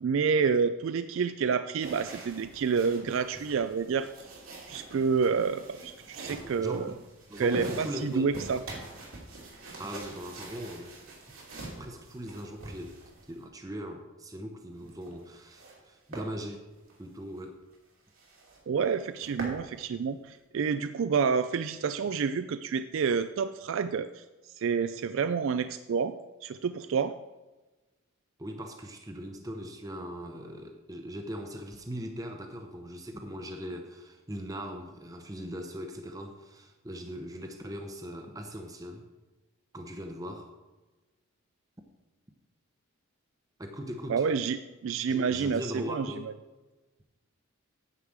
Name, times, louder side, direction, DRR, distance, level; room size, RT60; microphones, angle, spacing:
voice 1, 0.0-4.1 4.7-6.9 7.4-8.6 18.7-24.2 24.6-26.1 26.4-27.1 44.1-44.6 44.8-46.1, right 5 dB, 65° right, 11 dB, 0.3 m, -28 dB
sound 1, 1.8-13.5 14.8-15.8 16.1-16.3 16.8-17.0 17.4-17.5 17.7-17.8 18.1-18.6 19.0-19.6, right 2 dB, 85° right, 2.6 m, -44 dB
voice 2, 6.6-7.0 7.3-8.3 9.8-10.9 11.2-11.3 11.7-13.0 13.3-16.6 17.0-17.6 28.4-39.1 39.7-40.5 43.6-44.3 45.1-46.3, equal, 15° right, 4 dB, 0.7 m, -40 dB
9.6 x 4.8 x 7.3 m, 1.1 s
head